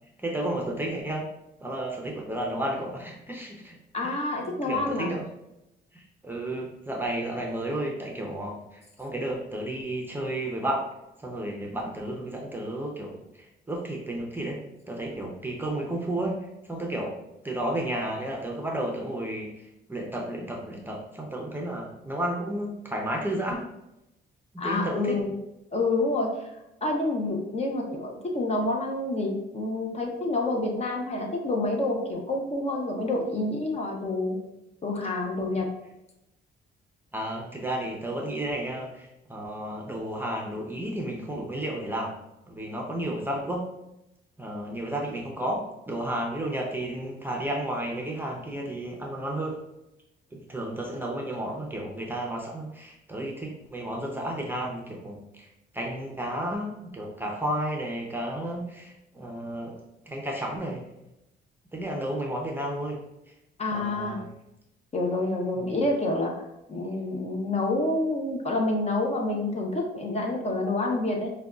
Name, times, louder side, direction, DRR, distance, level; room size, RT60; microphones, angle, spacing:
voice 1, 0.2-1.3 1.6-3.8 4.0-4.1 4.4-5.2 5.9-10.8 11.2-17.2 17.4-23.7 24.5-25.2 37.1-42.1 42.5-43.7 44.4-49.6 50.3-59.8 60.1-60.8 61.7-63.0 63.3-63.4 63.7-64.3 65.5-65.8, right 1 dB, 10° right, -1 dB, 0.6 m, -32 dB
voice 2, 3.9-5.1 24.6-25.3 25.7-26.5 26.8-34.4 34.8-35.7 63.6-64.2 64.9-66.4 66.7-71.3, left 2 dB, 30° left, 0 dB, 0.7 m, -28 dB
4.9 x 2.3 x 2.4 m, 0.89 s
cardioid pair, 90°, 20 cm